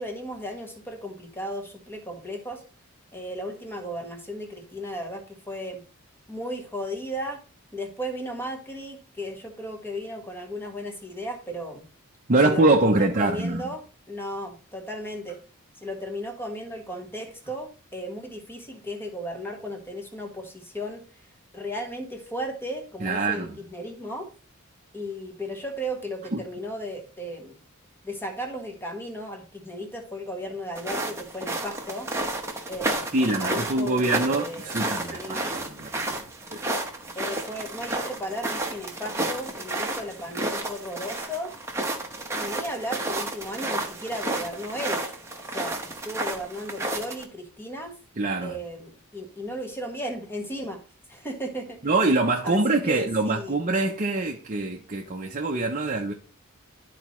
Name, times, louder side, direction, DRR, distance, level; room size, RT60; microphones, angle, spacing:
voice 1, 0.0-2.6 3.1-5.8 6.3-7.4 7.7-11.8 12.4-13.8 14.1-15.4 15.8-21.0 21.5-24.3 24.9-27.6 28.0-32.1 32.7-34.8 35.1-35.6 37.1-41.5 42.3-45.0 45.4-48.0 48.4-50.8 51.1-51.8 52.4-53.6, equal, 10° left, 1.4 m, -35 dB
voice 2, 12.3-13.7 23.0-23.5 26.3-26.4 33.1-36.2 36.5-36.6 48.2-48.6 51.8-56.1, right 2 dB, 35° right, 0.7 m, -24 dB
sound 1, 30.7-47.2, right 2 dB, 10° right, 1.0 m, -31 dB
12.5 x 4.2 x 3.0 m
head